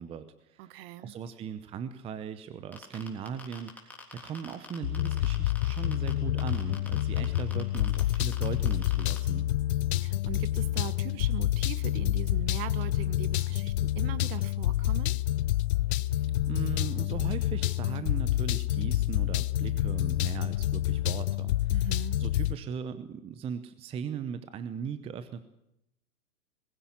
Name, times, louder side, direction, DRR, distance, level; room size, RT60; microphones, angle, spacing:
voice 1, 0.0-0.7 1.0-9.5 16.0-16.2 16.5-21.7 22.2-25.4, right 7 dB, 15° right, 12 dB, 0.7 m, -38 dB
voice 2, 0.6-1.1 10.0-15.1 21.7-22.2, right 14 dB, 40° right, 16 dB, 1.2 m, -40 dB
sound 1, 2.7-6.1 6.4-9.2, left 2 dB, 5° left, 3.4 m, -45 dB
sound 2, 4.8-22.6, left 15 dB, 45° left, 0.7 m, -28 dB
20.5 x 15.5 x 8.6 m, 0.82 s
hypercardioid pair, 125°, 45 cm